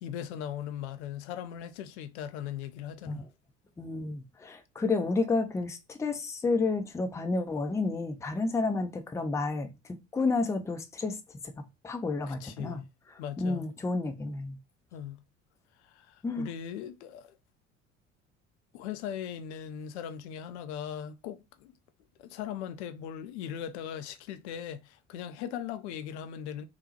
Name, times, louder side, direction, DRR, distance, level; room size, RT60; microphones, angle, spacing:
voice 1, 0.0-3.2 12.3-12.9 13.2-13.7 14.9-15.2 15.8-17.4 18.7-21.7 22.2-26.7, left 9 dB, 70° left, 0.5 m, -39 dB
voice 2, 3.8-9.7 10.1-11.2 11.4-12.8 13.4-14.6 16.2-16.5, left 3 dB, 10° left, 0.4 m, -30 dB
3.4 x 2.0 x 2.8 m
figure-of-eight pair, 60°, 36 cm